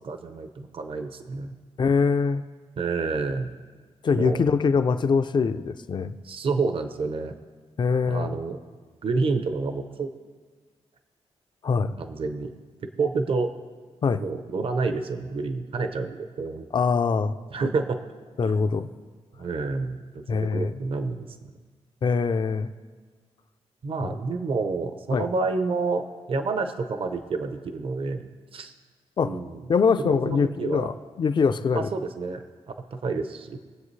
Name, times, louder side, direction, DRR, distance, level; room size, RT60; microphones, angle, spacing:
voice 1, 0.0-1.5 2.8-3.5 4.1-4.4 6.2-7.3 8.0-8.6 9.0-10.1 12.0-12.5 13.0-13.5 14.2-16.7 17.5-18.0 18.4-18.5 19.4-21.3 23.8-28.7 29.2-29.7 30.0-30.9 31.7-32.4 32.9-33.6, right 4 dB, 50° right, 7 dB, 0.8 m, -29 dB
voice 2, 1.8-2.4 4.0-6.2 7.8-8.4 11.6-12.0 14.0-14.2 16.7-17.4 18.4-18.9 20.3-20.7 22.0-22.7 24.0-24.1 25.1-25.3 29.2-29.4 29.7-30.9 31.2-31.9, left 5 dB, 40° left, 10 dB, 0.5 m, -23 dB
22.0 x 7.9 x 3.3 m, 1.5 s
wide cardioid pair, 145°, 11 cm